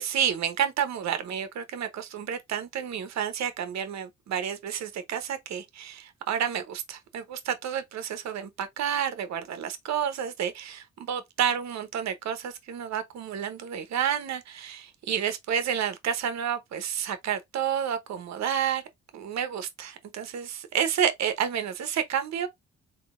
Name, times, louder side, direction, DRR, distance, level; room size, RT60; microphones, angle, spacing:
voice 1, 0.0-18.8 19.1-22.5, right 8 dB, 65° right, 0.9 m, -30 dB
3.8 x 2.8 x 2.5 m
cardioid pair, 90°, 30 cm